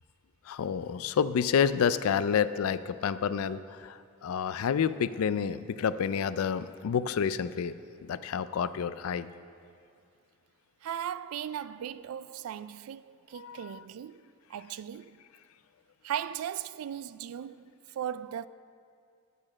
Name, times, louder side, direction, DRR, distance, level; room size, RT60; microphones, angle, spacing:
voice 1, 0.5-7.7 8.0-9.3 13.3-13.8, left 7 dB, 90° left, 0.4 m, -29 dB
voice 2, 10.8-15.2 16.0-18.5, right 10 dB, 90° right, 0.3 m, -38 dB
8.5 x 6.8 x 7.4 m
head